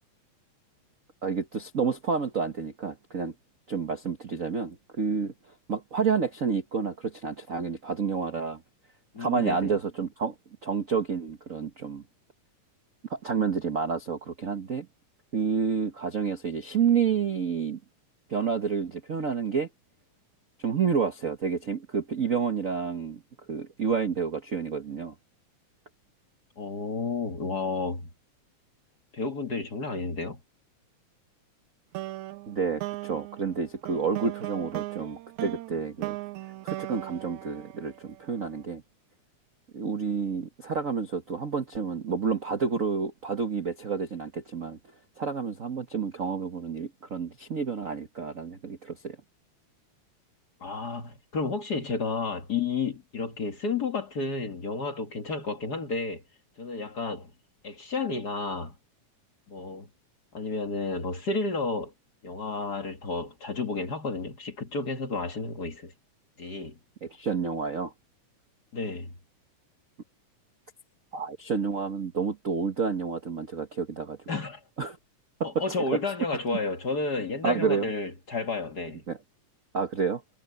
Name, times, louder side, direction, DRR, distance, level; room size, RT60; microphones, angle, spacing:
voice 1, 1.2-3.3 3.7-5.3 5.7-8.6 9.2-10.3 10.6-12.0 13.1-14.9 15.3-17.8 18.3-19.7 20.6-23.2 23.5-25.1 32.5-36.2 36.6-38.8 39.7-44.8 45.2-49.2 67.0-67.9 71.1-74.2 74.8-75.0 75.4-75.6 75.9-76.0 77.4-77.9 79.1-79.2 79.7-80.2, right 6 dB, 60° right, 0.8 m, -29 dB
voice 2, 9.1-9.7 26.6-28.1 29.1-30.4 50.6-56.2 56.6-57.3 57.6-58.7 59.5-59.9 60.3-61.9 62.2-65.9 66.4-66.8 68.7-69.1 74.3-74.6 75.4-79.0, left 4 dB, 35° left, 1.9 m, -31 dB
sound 1, 31.9-38.4, right 17 dB, 80° right, 2.0 m, -38 dB
omnidirectional pair, 3.5 m